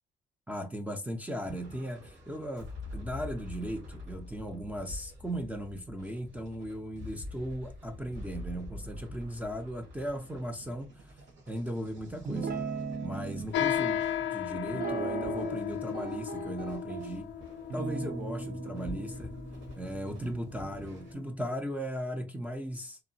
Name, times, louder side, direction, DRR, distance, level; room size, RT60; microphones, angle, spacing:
voice 1, 0.5-11.1 11.5-12.6 13.0-14.0 14.3-17.3 17.7-19.3 19.7-23.0, equal, 5° right, 0.4 m, -37 dB
sound 1, 1.4-21.1, left 1 dB, 65° right, 1.5 m, -47 dB
Guitar, 12.3-13.5 14.7-15.7 15.9-17.1 17.7-21.2, right 4 dB, 50° right, 0.6 m, -38 dB
sound 2, 13.5-21.3, left 10 dB, 70° left, 0.4 m, -35 dB
3.0 x 2.1 x 2.6 m
cardioid pair, 90°, 20 cm